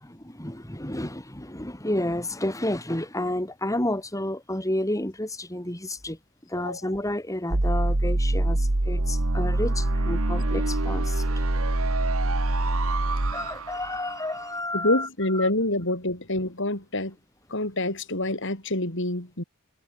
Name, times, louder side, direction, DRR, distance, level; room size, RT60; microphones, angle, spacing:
voice 1, 0.0-6.2 6.5-11.2 13.3-15.1 15.4-15.5, left 1 dB, 15° left, 3.9 m, -30 dB
voice 2, 6.6-7.0 14.7-17.2 17.5-19.4, left 1 dB, 60° left, 7.4 m, -27 dB
sound 1, 7.5-14.5, right 2 dB, 70° right, 1.8 m, -25 dB
head